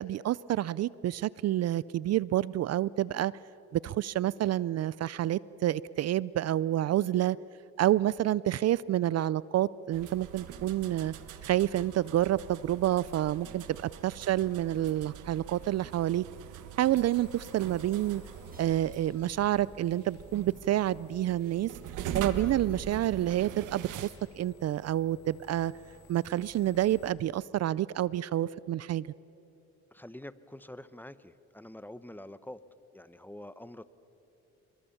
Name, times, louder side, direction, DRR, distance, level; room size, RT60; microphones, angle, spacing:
voice 1, 0.0-3.3 3.7-7.4 7.8-11.1 11.4-13.6 14.0-16.2 16.8-18.2 18.6-21.7 22.1-25.7 26.1-29.1, right 13 dB, 55° right, 21 dB, 0.5 m, -28 dB
sound 1, 9.9-24.1, right 9 dB, 85° right, 1.5 m, -43 dB
sound 2, 17.0-27.1, left 4 dB, 75° left, 5.0 m, -56 dB
Crash cymbal, 18.5-20.5, right 2 dB, 30° right, 5.9 m, -63 dB
voice 2, 29.9-32.6 32.9-33.8, left 1 dB, 5° left, 14 dB, 0.9 m, -46 dB
27.5 x 23.0 x 7.2 m, 3.0 s
cardioid pair, 90°, 30 cm